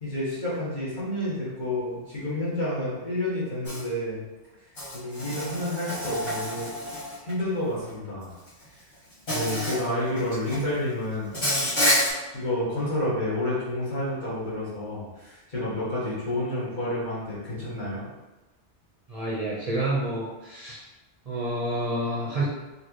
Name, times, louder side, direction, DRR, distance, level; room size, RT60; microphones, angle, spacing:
voice 1, 0.0-4.2 4.9-6.7 7.2-8.3 9.3-11.7 12.3-18.0, left 1 dB, 40° left, -9 dB, 1.6 m, -29 dB
Insect, 3.7-3.8 4.8-7.3 8.5-8.6 9.3-9.8 10.2-10.6 11.3-12.1, equal, 70° left, 1.9 m, -28 dB
voice 2, 19.1-20.8 21.3-22.4, right 1 dB, 35° right, -8 dB, 0.8 m, -28 dB
4.4 x 2.7 x 3.0 m, 1.1 s
omnidirectional pair, 1.2 m